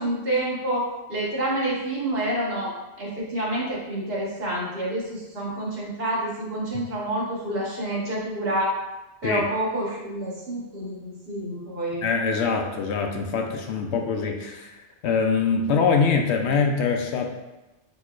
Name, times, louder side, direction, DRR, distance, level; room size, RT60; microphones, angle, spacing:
voice 1, 0.0-8.7 9.2-12.0, right 1 dB, 55° right, -5 dB, 1.4 m, -28 dB
voice 2, 12.0-14.7 15.0-17.3, left 5 dB, 75° left, 3 dB, 0.8 m, -23 dB
6.1 x 2.9 x 2.4 m, 1.0 s
omnidirectional pair, 1.2 m